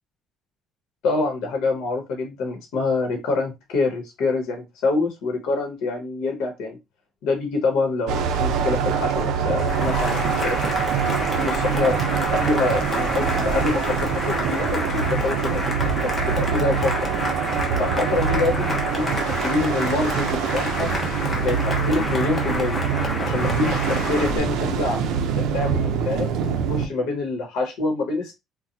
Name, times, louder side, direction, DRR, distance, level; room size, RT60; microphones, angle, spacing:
voice 1, 1.0-6.8 7.2-10.6 11.4-12.0 12.3-17.1 17.8-20.9 21.4-22.8 23.2-25.0 25.3-28.3, left 3 dB, 80° left, 3 dB, 0.9 m, -26 dB
sound 1, 8.1-26.9, right 7 dB, 85° right, 0.5 m, -24 dB
Cheering / Applause, 9.6-24.4, left 2 dB, 20° left, 0.7 m, -29 dB
3.8 x 2.1 x 2.8 m, 0.22 s
cardioid pair, 165°, 0 cm